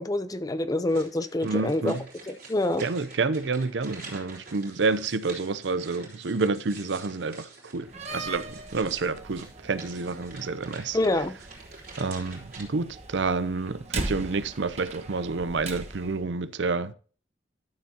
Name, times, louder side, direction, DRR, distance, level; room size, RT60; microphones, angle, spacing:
voice 1, 0.0-2.0 2.3-2.9 10.9-11.4, left 1 dB, 20° left, 0.6 m, -26 dB
sound 1, 0.9-12.6, right 3 dB, 55° right, 3.7 m, -47 dB
voice 2, 1.4-2.0 2.8-7.5 7.7-11.0 12.0-16.9, right 4 dB, 75° right, 0.6 m, -29 dB
Slam, 7.8-16.2, right 2 dB, 40° right, 1.3 m, -40 dB
12.5 x 7.2 x 2.8 m
head